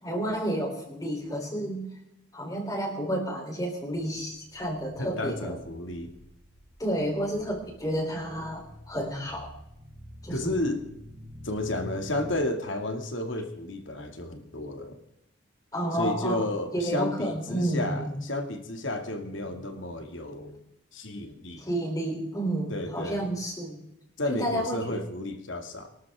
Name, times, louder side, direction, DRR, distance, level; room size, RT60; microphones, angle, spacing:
voice 1, 0.0-1.9 2.3-5.6 6.8-9.5 10.2-10.6 15.7-16.5 16.7-18.1 21.6-23.8 24.4-25.0, right 1 dB, 15° left, 1 dB, 3.7 m, -31 dB
sound 1, 4.4-12.3, left 1 dB, 45° right, 3.8 m, -47 dB
voice 2, 5.0-6.1 10.3-10.8 11.4-15.0 15.9-20.6 20.9-21.7 22.7-23.3 24.2-25.9, left 1 dB, 70° left, 5 dB, 2.2 m, -32 dB
23.5 x 12.5 x 3.7 m, 0.82 s
head